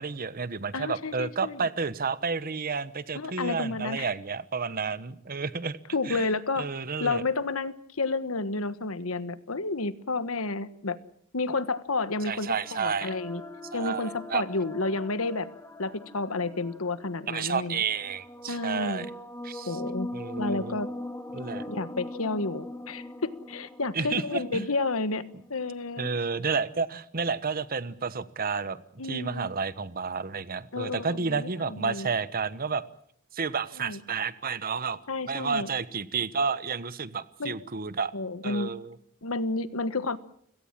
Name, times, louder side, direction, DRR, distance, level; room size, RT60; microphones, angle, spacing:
voice 1, 0.0-5.8 6.1-6.3 6.6-7.2 12.3-13.1 13.7-14.4 17.3-19.1 19.4-19.8 20.1-20.8 21.3-21.7 23.9-24.7 26.0-32.8 33.3-35.0 35.3-38.1 38.4-39.0, right 5 dB, 45° right, 15 dB, 1.1 m, -31 dB
voice 2, 0.7-1.7 3.1-4.1 5.9-6.7 7.0-11.0 11.3-13.4 13.7-15.5 15.8-17.8 18.5-19.1 19.7-20.1 20.4-20.9 21.7-25.2 25.5-26.1 29.0-29.5 30.7-32.1 33.8-34.0 35.1-35.7 37.4-37.5 38.1-38.7 39.2-40.2, left 3 dB, 85° left, 13 dB, 1.3 m, -31 dB
sound 1, 11.9-25.6, left 1 dB, 15° left, 2.2 m, -41 dB
30.0 x 17.5 x 7.4 m, 0.68 s
head